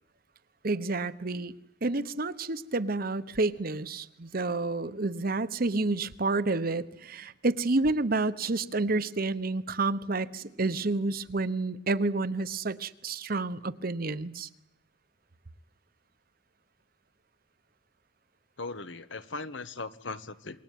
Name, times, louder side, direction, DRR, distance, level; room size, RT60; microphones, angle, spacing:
voice 1, 0.6-1.5 1.8-14.5, right 3 dB, 50° right, 13 dB, 1.0 m, -29 dB
voice 2, 18.6-20.6, left 3 dB, 80° left, 12 dB, 1.4 m, -39 dB
27.5 x 22.0 x 9.3 m, 0.82 s
head